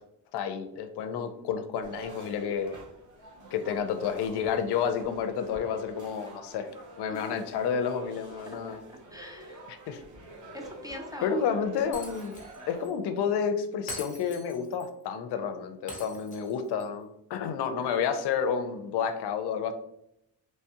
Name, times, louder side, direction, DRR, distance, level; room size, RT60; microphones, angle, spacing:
voice 1, 0.3-2.8 3.5-6.7 7.0-8.8 9.7-10.0 11.2-12.3 12.7-19.7, left 7 dB, 85° left, 9 dB, 0.5 m, -30 dB
sound 1, 1.8-12.9, right 2 dB, 50° right, 0.8 m, -48 dB
voice 2, 8.5-8.8 9.1-9.7 10.5-11.4, left 1 dB, 10° right, 2 dB, 0.3 m, -42 dB
Shatter, 11.9-12.6 12.8-12.9 13.9-14.9 15.9-16.9, left 2 dB, 20° left, 0.8 m, -43 dB
3.1 x 2.2 x 2.7 m, 0.78 s
cardioid pair, 105°, 39 cm